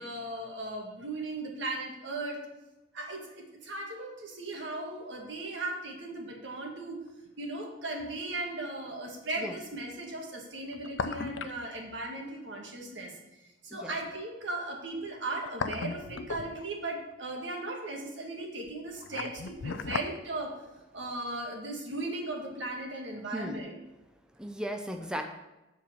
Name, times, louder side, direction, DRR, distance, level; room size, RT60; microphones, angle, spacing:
voice 1, 0.0-2.4 2.9-7.0 7.4-13.1 13.6-20.6 20.9-23.7, right 2 dB, 75° right, 0 dB, 1.8 m, -37 dB
sound 1, 7.4-7.5 10.6-11.6 11.9-12.0 15.2-16.9 18.7-20.2 20.5-20.6, left 5 dB, 75° left, 0.4 m, -36 dB
voice 2, 24.4-25.2, equal, 5° right, 4 dB, 0.5 m, -36 dB
7.5 x 4.5 x 6.8 m, 1.0 s
head